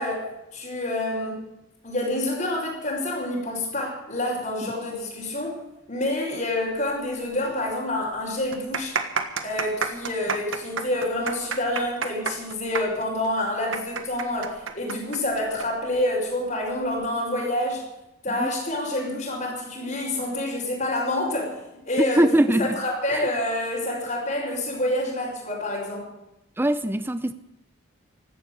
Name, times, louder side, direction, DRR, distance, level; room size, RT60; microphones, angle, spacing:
voice 1, 0.0-1.4 1.8-5.6 5.9-8.9 9.4-17.8 18.2-21.6 21.9-22.2 22.6-26.1, left 1 dB, 40° left, -8 dB, 4.6 m, -27 dB
sound 1, 7.3-7.4 7.7-7.8 8.4-15.7 15.9-16.0 16.8-17.1, right 5 dB, 75° right, 1.6 m, -29 dB
voice 2, 22.2-22.8 23.1-23.3 26.6-27.3, right 1 dB, 10° right, 12 dB, 0.5 m, -22 dB
16.0 x 12.0 x 6.7 m, 0.92 s
head